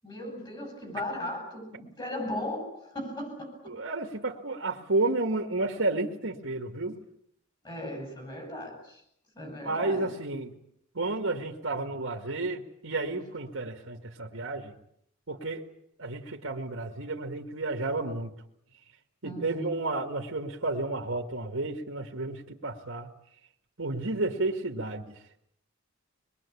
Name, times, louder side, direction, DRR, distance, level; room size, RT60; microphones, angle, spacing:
voice 1, 0.0-3.7 7.6-9.0 9.4-10.1 19.2-19.8, left 1 dB, 20° left, 3 dB, 7.8 m, -37 dB
voice 2, 3.7-7.0 9.6-10.5 10.9-14.7 15.3-15.7 16.0-18.3 19.2-23.1 23.8-25.2, right 2 dB, 70° right, 1 dB, 2.1 m, -31 dB
24.5 x 21.5 x 8.5 m, 0.72 s
head